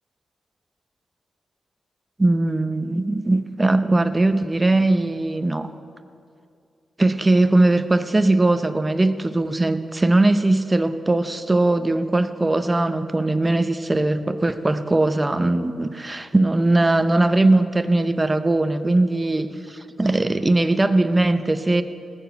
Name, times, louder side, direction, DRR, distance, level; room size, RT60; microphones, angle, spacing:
voice 1, 2.2-5.7 7.0-21.8, right 2 dB, 20° right, 10 dB, 0.7 m, -20 dB
18.5 x 7.0 x 7.9 m, 2.4 s
wide cardioid pair, 105°, 0 cm